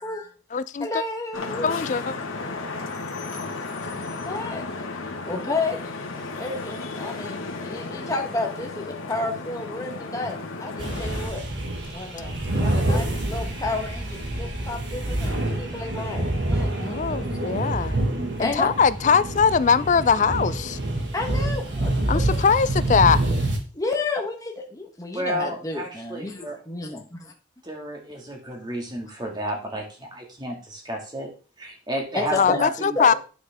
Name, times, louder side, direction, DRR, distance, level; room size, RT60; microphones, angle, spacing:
voice 1, 0.0-0.3 0.8-1.8 4.2-4.6 5.3-5.8 6.3-11.4 11.9-17.4 18.4-18.7 21.1-21.9 23.7-27.3 32.1-32.6 32.9-33.1, left 3 dB, 15° left, 1.2 m, -31 dB
voice 2, 0.5-1.0 1.6-2.1 10.9-11.0 16.9-18.0 18.4-20.8 22.1-23.3 32.4-33.1, left 6 dB, 35° left, 0.3 m, -21 dB
Vehicle horn car horn honking / Traffic noise roadway noise, 1.3-11.3, left 3 dB, 85° left, 1.5 m, -34 dB
sound 1, 10.8-23.6, right 1 dB, 60° right, 1.6 m, -27 dB
voice 3, 25.1-26.6 27.6-31.3 31.6-33.0, equal, 20° right, 2.0 m, -32 dB
9.4 x 6.2 x 3.5 m
head